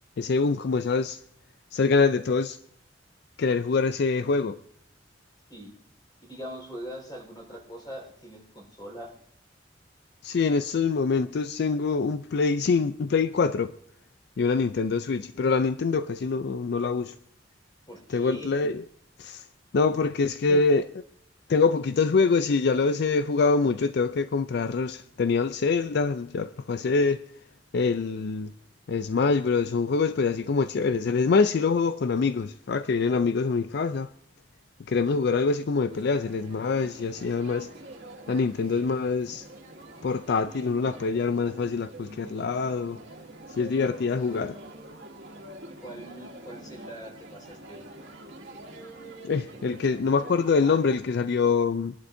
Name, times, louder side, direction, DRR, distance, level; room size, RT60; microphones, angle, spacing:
voice 1, 0.2-1.2 1.7-2.6 3.4-4.6 10.2-13.7 14.4-17.1 18.1-18.8 19.2-19.5 19.7-20.9 21.5-27.2 27.7-28.5 28.9-34.1 34.9-37.7 38.3-39.5 40.0-43.0 43.5-44.6 49.2-51.9, left 4 dB, 60° left, 0.4 m, -25 dB
voice 2, 6.2-9.1 17.9-18.5 20.5-20.6 45.8-47.8, equal, 25° left, 4.6 m, -41 dB
sound 1, 35.9-51.0, right 1 dB, 75° right, 2.2 m, -46 dB
24.0 x 11.5 x 2.6 m
head